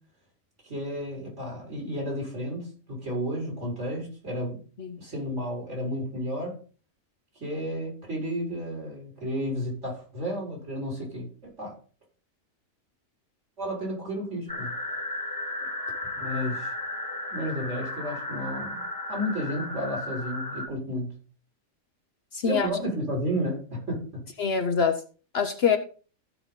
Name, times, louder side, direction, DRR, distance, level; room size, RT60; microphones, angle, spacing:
voice 1, 0.6-4.6 5.0-6.6 7.4-11.7 13.6-14.7 16.2-16.7 17.3-21.1 22.4-24.2, equal, 55° right, -2 dB, 5.4 m, -32 dB
sound 1, 14.5-20.7, left 1 dB, 15° left, 1.2 m, -34 dB
voice 2, 22.3-22.7 24.4-25.0 25.3-25.8, left 6 dB, 55° left, 6 dB, 1.0 m, -24 dB
14.5 x 5.7 x 4.0 m, 0.38 s
omnidirectional pair, 1.4 m